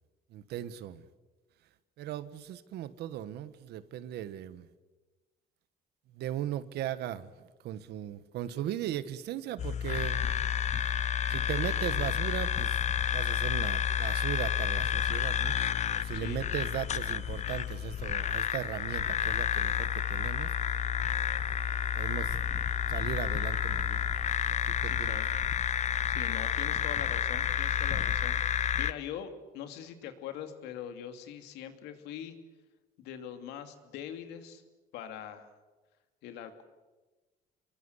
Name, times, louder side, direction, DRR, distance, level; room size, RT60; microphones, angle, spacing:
voice 1, 0.3-1.0 2.0-4.7 6.1-7.3 7.6-10.2 11.3-12.8 13.1-20.5 21.9-22.4 22.9-24.1 24.5-25.2, right 11 dB, 75° right, 1.5 m, -38 dB
sound 1, 9.6-28.9, left 8 dB, 45° left, 1.0 m, -30 dB
voice 2, 24.8-25.3 26.1-32.4 33.0-34.6 34.9-35.5 36.2-36.6, left 9 dB, 90° left, 2.8 m, -43 dB
26.0 x 23.0 x 8.2 m
cardioid pair, 110°, 17 cm